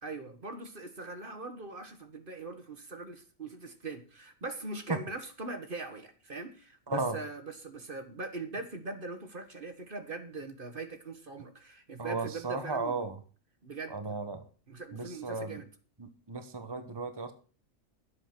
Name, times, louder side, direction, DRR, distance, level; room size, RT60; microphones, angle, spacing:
voice 1, 0.0-13.1 13.6-14.0 14.7-15.7, right 3 dB, 40° right, 1.6 m, -41 dB
voice 2, 6.9-7.2 12.0-13.2 13.9-14.4 14.9-15.6 16.0-17.3, right 3 dB, 20° right, 1.2 m, -34 dB
12.5 x 8.0 x 6.0 m
omnidirectional pair, 1.4 m